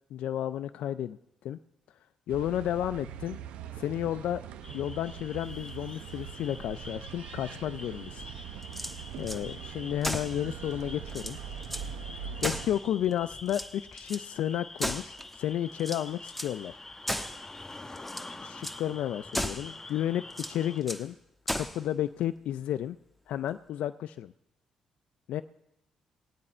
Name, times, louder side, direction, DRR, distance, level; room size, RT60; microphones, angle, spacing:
voice 1, 0.1-1.2 1.4-1.6 2.3-3.4 3.8-4.4 4.7-8.2 9.2-11.4 12.4-16.8 18.4-21.2 21.5-23.0 23.3-24.3 25.3-25.4, left 11 dB, 75° left, 12 dB, 0.4 m, -32 dB
sound 1, 2.3-12.8, right 9 dB, 80° right, 0.7 m, -42 dB
sound 2, 4.6-20.8, left 2 dB, 25° left, 1.1 m, -47 dB
sound 3, 8.6-9.4 10.0-10.4 10.8-10.9 11.1-11.9 12.4-13.1 13.5-14.3 14.8-15.4 15.8-16.6 17.1-17.4 18.0-18.3 18.6-18.8 19.3-19.7 20.3-21.1 21.5-21.8, equal, 5° left, 1.2 m, -35 dB
19.5 x 8.6 x 4.4 m, 0.84 s
supercardioid pair, 65°, 2 cm